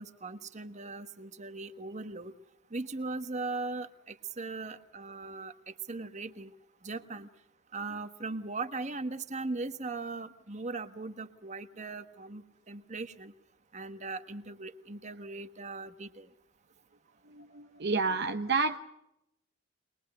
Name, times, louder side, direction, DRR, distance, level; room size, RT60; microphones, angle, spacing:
voice 1, 0.0-2.3 2.7-6.5 6.8-7.3 7.7-13.3 13.7-16.3, right 3 dB, 40° right, 9 dB, 1.4 m, -39 dB
voice 2, 17.3-18.8, right 4 dB, 60° right, 7 dB, 0.9 m, -30 dB
23.0 x 21.5 x 7.8 m, 0.82 s
head